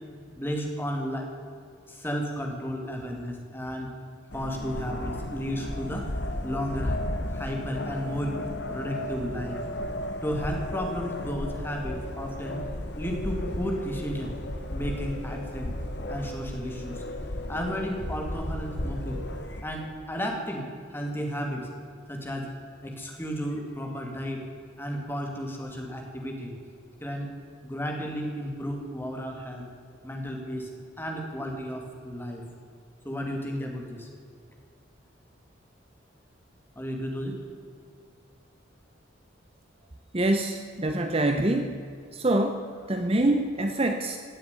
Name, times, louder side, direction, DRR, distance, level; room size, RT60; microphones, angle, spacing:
voice 1, 0.3-1.3 1.9-3.9 4.3-6.1 6.4-7.0 7.3-8.3 8.7-9.6 10.2-12.6 13.0-14.3 14.7-15.7 16.1-17.1 17.5-21.7 22.1-22.5 22.8-24.4 24.8-26.5 27.0-27.3 27.6-29.6 30.0-30.7 31.0-32.4 33.0-34.1 36.8-37.4, equal, 10° left, 1 dB, 2.2 m, -33 dB
sound 1, 4.3-19.6, left 1 dB, 55° left, 1.4 m, -34 dB
voice 2, 40.1-41.8 42.1-44.2, right 1 dB, 30° right, 6 dB, 0.8 m, -25 dB
16.5 x 7.8 x 9.6 m, 2.2 s
head